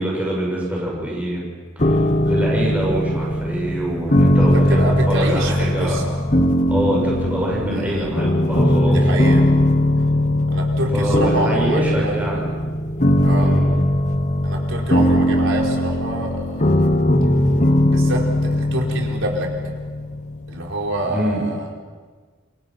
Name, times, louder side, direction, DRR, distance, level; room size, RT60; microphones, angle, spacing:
voice 1, 0.0-1.4 1.8-6.2 6.7-9.3 10.9-12.4 13.4-13.8 21.1-21.5, right 1 dB, 5° right, -4 dB, 6.4 m, -25 dB
sound 1, 1.8-20.8, left 1 dB, 35° left, 1.3 m, -19 dB
voice 2, 4.3-6.1 7.7-8.1 8.9-9.5 10.5-12.3 13.2-13.5 14.4-16.9 17.9-18.2 18.5-19.6 20.5-21.7, right 1 dB, 70° right, 0 dB, 4.4 m, -26 dB
28.5 x 23.5 x 5.8 m, 1.5 s
head